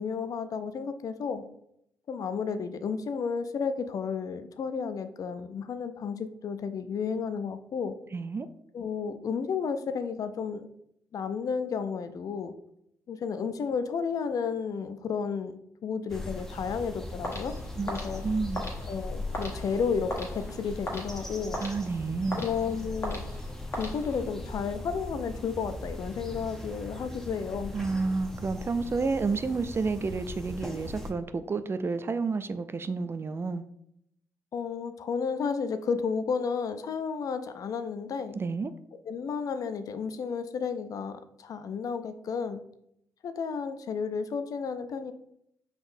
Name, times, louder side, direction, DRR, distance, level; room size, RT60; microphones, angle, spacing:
voice 1, 0.0-1.4 2.1-8.0 8.7-10.7 11.1-12.5 13.1-17.6 17.8-18.2 18.9-21.6 22.4-23.3 23.7-27.7 34.5-38.4 39.1-42.6 43.2-45.1, left 6 dB, 55° left, 10 dB, 0.4 m, -32 dB
voice 2, 8.1-8.5 17.8-17.9 18.2-18.6 21.6-22.5 27.7-33.6 38.3-38.7, right 4 dB, 35° right, 12 dB, 0.4 m, -30 dB
sound 1, 16.1-31.1, left 1 dB, 5° left, 0.8 m, -39 dB
sound 2, 17.2-24.5, left 1 dB, 40° left, 1.5 m, -40 dB
5.1 x 3.8 x 2.6 m, 0.75 s
hypercardioid pair, 45°, 7 cm